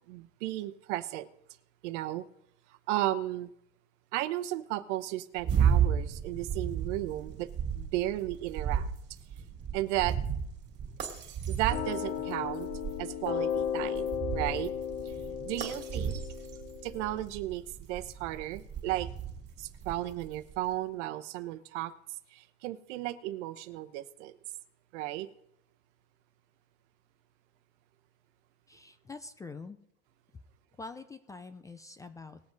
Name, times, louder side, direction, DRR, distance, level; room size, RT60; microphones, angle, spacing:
voice 1, 0.1-1.3 1.8-2.2 2.9-3.5 4.1-8.9 9.7-10.2 11.5-12.7 13.0-14.1 14.3-14.7 15.0-15.1 15.4-16.2 16.8-19.1 19.6-21.9 22.3-24.3 24.9-25.3, right 15 dB, 80° right, 0.9 m, -34 dB
sound 1, 5.4-20.6, right 8 dB, 30° right, 2.3 m, -34 dB
sound 2, 11.7-17.2, left 9 dB, 50° left, 1.2 m, -35 dB
voice 2, 28.7-29.8 30.8-32.4, left 3 dB, 10° left, 0.3 m, -45 dB
19.5 x 7.4 x 3.9 m
supercardioid pair, 150°, 35 cm